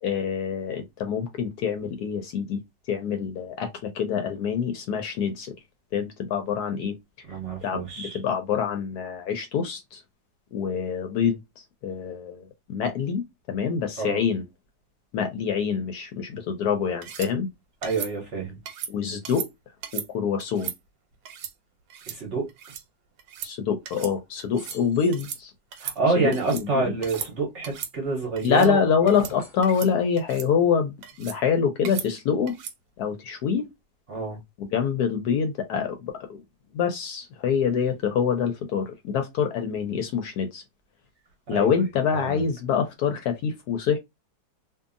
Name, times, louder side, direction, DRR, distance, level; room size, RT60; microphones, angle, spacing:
voice 1, 0.0-2.6 2.9-5.5 5.9-7.0 7.6-10.0 10.5-14.4 15.1-17.5 18.9-19.5 19.9-20.7 23.4-25.5 26.2-26.8 28.4-32.6 33.0-33.7 34.6-36.4 36.7-40.6 41.5-44.0, left 7 dB, 70° left, 1.0 m, -26 dB
voice 2, 7.3-8.2 14.0-14.2 17.8-18.6 22.1-22.5 25.8-29.2 34.1-34.4 41.5-41.7 42.1-42.4, right 3 dB, 50° right, 1.0 m, -28 dB
sound 1, 17.0-17.3 17.8-18.1 18.7-18.9 19.2-19.5 19.8-20.1 20.4-20.8 21.2-21.5 21.9-22.2 22.5-22.8 23.2-23.5 23.8-24.1 24.4-24.8 25.1-25.4 25.7-26.6 27.0-27.3 27.6-27.9 28.4-28.7 29.1-29.3 29.6-29.9 30.2-30.5 31.0-31.4 31.8-32.1 32.5-32.8, right 9 dB, 85° right, 1.3 m, -37 dB
sound 2, 24.5-25.3 26.6-27.4 29.0-30.0, left 4 dB, 40° left, 1.0 m, -46 dB
2.7 x 2.5 x 2.4 m
omnidirectional pair, 1.9 m